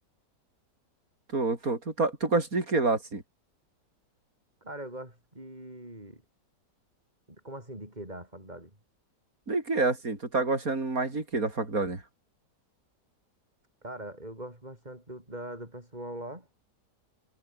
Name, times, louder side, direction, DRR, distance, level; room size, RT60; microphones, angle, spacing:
voice 1, 1.3-3.2 9.5-12.0, right 3 dB, 50° right, 5.5 m, -28 dB
voice 2, 4.6-6.2 7.4-8.7 13.8-16.5, right 1 dB, 25° right, 7.4 m, -42 dB
omnidirectional pair, 1.9 m